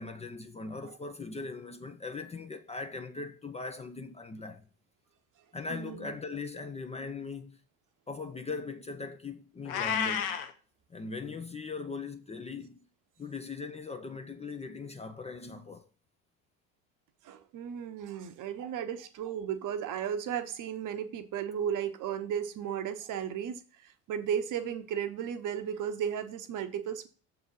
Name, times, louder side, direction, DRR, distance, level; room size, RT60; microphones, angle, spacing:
voice 1, 0.0-4.6 5.5-7.6 8.1-10.3 10.9-12.8 13.2-15.9, left 4 dB, 15° left, 0.6 m, -40 dB
voice 2, 5.7-6.2 17.2-27.1, right 8 dB, 45° right, 0.9 m, -35 dB
Meow, 9.7-10.5, left 8 dB, 75° left, 0.9 m, -30 dB
6.8 x 3.9 x 5.5 m
hypercardioid pair, 65°, 43 cm